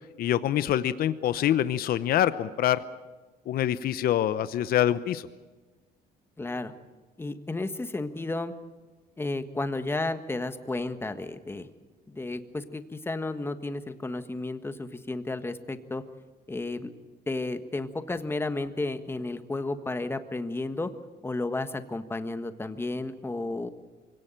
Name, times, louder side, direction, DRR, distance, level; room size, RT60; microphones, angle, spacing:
voice 1, 0.2-2.8 3.5-5.2, left 11 dB, 60° left, 14 dB, 0.8 m, -25 dB
voice 2, 6.4-6.7 7.2-8.5 9.2-11.7 12.1-16.0 16.5-16.9 17.3-20.9 21.2-23.7, left 2 dB, 15° left, 9 dB, 1.4 m, -32 dB
24.0 x 17.5 x 9.0 m, 1.3 s
cardioid pair, 110°, 17 cm